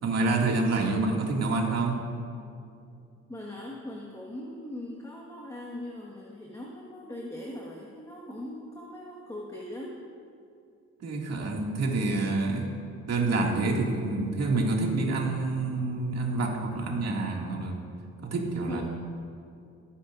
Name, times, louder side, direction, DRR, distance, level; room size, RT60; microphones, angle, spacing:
voice 1, 0.0-2.0 11.0-12.7 13.1-17.9 18.2-18.8, right 3 dB, 55° right, -1 dB, 2.2 m, -27 dB
voice 2, 3.3-10.0 18.7-18.8, left 1 dB, 10° left, -3 dB, 1.5 m, -40 dB
19.5 x 9.8 x 2.5 m, 2.5 s
cardioid pair, 90°, 30 cm